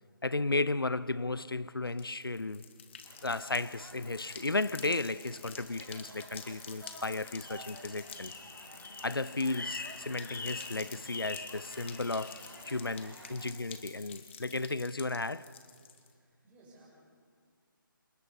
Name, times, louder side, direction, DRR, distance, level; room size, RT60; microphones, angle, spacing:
voice 1, 0.2-2.6 3.2-8.3 9.0-12.4 12.7-15.5, left 2 dB, 90° left, 0.7 m, -34 dB
sound 1, 1.9-16.1, left 7 dB, 35° left, 1.7 m, -50 dB
sound 2, 3.0-13.5, right 2 dB, 80° right, 3.4 m, -53 dB
sound 3, 7.3-12.7, left 3 dB, 60° left, 1.7 m, -45 dB
voice 2, 16.2-16.9, right 2 dB, 10° right, 6.7 m, -59 dB
27.5 x 19.0 x 5.6 m
figure-of-eight pair, 155°, 12 cm